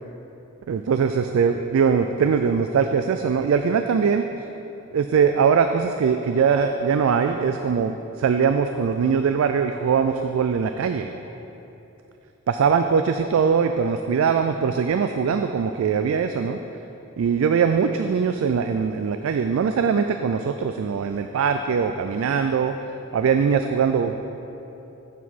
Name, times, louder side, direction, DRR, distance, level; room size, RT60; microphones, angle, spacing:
voice 1, 0.7-4.2 4.9-11.1 12.5-16.6 17.2-22.7 23.1-24.2, right 6 dB, 80° right, 7 dB, 0.3 m, -21 dB
8.1 x 7.4 x 4.1 m, 3.0 s
head